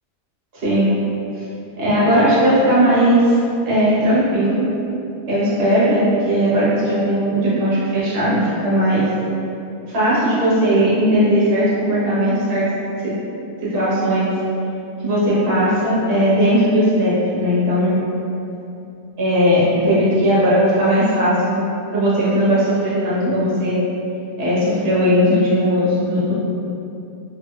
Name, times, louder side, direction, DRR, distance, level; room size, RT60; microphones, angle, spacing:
voice 1, 0.5-0.9 1.4-1.5 1.8-3.3 3.6-4.7 5.2-9.0 9.9-12.7 13.0-13.1 13.6-14.3 15.0-18.0 19.2-21.6 21.9-23.8 24.4-26.3, equal, 45° right, -9 dB, 1.0 m, -17 dB
2.9 x 2.4 x 3.1 m, 2.8 s
omnidirectional pair, 1.7 m